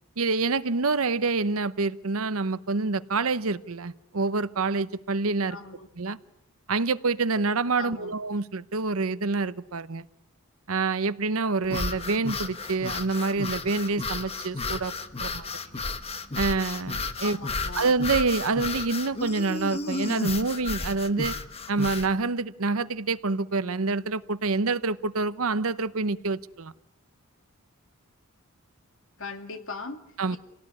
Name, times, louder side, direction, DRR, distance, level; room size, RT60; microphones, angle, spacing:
voice 1, 0.2-5.6 6.0-6.2 6.7-10.0 10.7-14.9 15.2-15.5 16.3-17.4 17.7-21.3 21.7-26.7 30.2-30.4, right 3 dB, 70° right, 15 dB, 0.9 m, -27 dB
voice 2, 5.5-5.9 7.8-8.1 17.2-17.9 29.2-30.0 30.3-30.4, left 4 dB, 65° left, 7 dB, 2.2 m, -39 dB
sound 1, 11.6-22.1, left 3 dB, 30° left, 1.3 m, -33 dB
28.5 x 18.0 x 9.9 m, 0.89 s
head